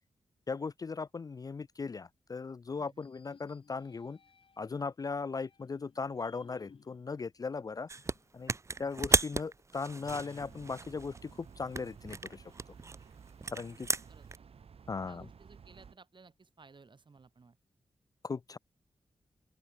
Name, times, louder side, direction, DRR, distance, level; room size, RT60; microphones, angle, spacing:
voice 1, 0.5-4.2 4.6-7.9 8.3-8.5 8.8-12.5 13.5-13.9 14.9-15.3 18.2-18.6, left 4 dB, 35° left, 0.4 m, -38 dB
voice 2, 2.8-3.1 8.7-8.9 13.4-13.5 14.1-14.3 15.0-17.6, right 4 dB, 50° right, 5.4 m, -58 dB
sound 1, 3.0-4.8 5.4-8.4 8.8-8.9 10.0-12.0, left 5 dB, 55° left, 1.4 m, -61 dB
sound 2, 7.9-8.2 8.5-11.3 11.7-14.4, right 3 dB, 30° right, 0.5 m, -33 dB
sound 3, 10.4-15.9, right 6 dB, 70° right, 1.6 m, -54 dB
open air
cardioid pair, 70°, 11 cm